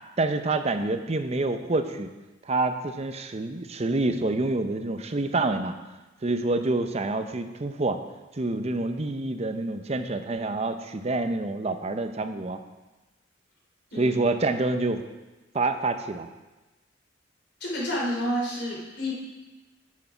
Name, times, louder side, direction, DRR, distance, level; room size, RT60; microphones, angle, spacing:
voice 1, 0.2-2.1 2.5-5.7 6.2-8.0 8.4-12.6 14.0-15.0 15.5-16.3, right 2 dB, 35° right, 8 dB, 0.6 m, -27 dB
voice 2, 17.6-19.1, equal, 60° left, -4 dB, 3.3 m, -29 dB
8.8 x 6.4 x 5.8 m, 1.1 s
head